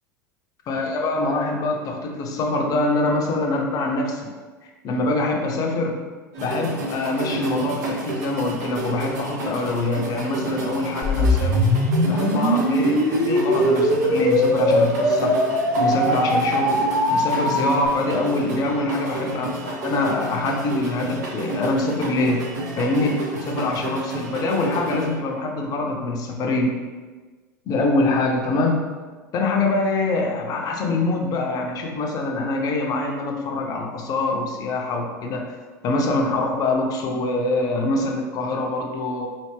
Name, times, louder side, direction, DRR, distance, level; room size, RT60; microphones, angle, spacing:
voice 1, 0.7-4.3 4.6-6.0 6.4-11.6 12.1-15.4 15.8-16.8 17.1-22.4 22.8-26.7 27.7-28.8 29.3-35.5 35.8-39.3, left 2 dB, 40° left, 2 dB, 0.6 m, -24 dB
sound 1, 6.3-25.1, right 1 dB, 70° right, 0.8 m, -31 dB
sound 2, 11.0-17.9, equal, 5° left, 0.8 m, -20 dB
3.3 x 2.5 x 3.2 m, 1.4 s
hypercardioid pair, 85°, 10 cm